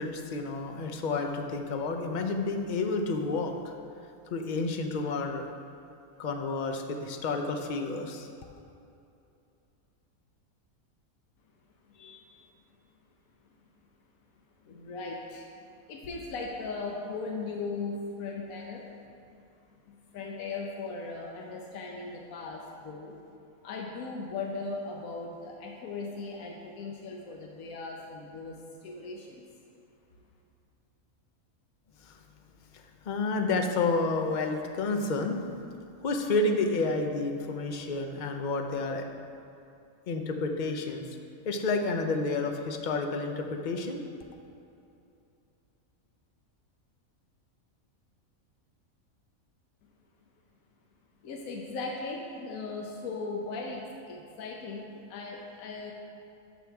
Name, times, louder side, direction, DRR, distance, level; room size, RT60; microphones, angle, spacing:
voice 1, 0.0-3.7 4.3-5.5 6.2-8.3 32.0-32.2 32.7-35.4 36.0-39.1 40.1-41.1 41.4-44.0, left 3 dB, 50° left, 4 dB, 0.6 m, -30 dB
voice 2, 11.9-12.4 14.6-15.5 15.9-18.9 19.9-23.1 23.6-29.4 51.2-55.9, left 3 dB, 80° left, 0 dB, 1.2 m, -38 dB
12.0 x 6.2 x 3.5 m, 2.6 s
omnidirectional pair, 1.5 m